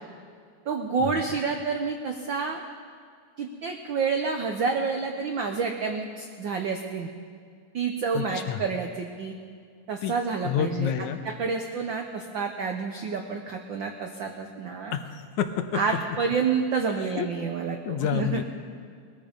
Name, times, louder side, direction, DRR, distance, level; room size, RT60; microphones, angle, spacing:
voice 1, 0.7-2.6 3.4-7.1 7.7-9.3 9.9-10.9 11.2-15.0 15.7-18.4, right 5 dB, 85° right, 3 dB, 1.0 m, -29 dB
voice 2, 8.1-8.6 10.0-10.1 10.4-11.2 14.9-15.8 16.9-17.3 17.9-18.4, left 9 dB, 90° left, 8 dB, 2.3 m, -29 dB
20.5 x 14.0 x 5.2 m, 2.2 s
omnidirectional pair, 3.4 m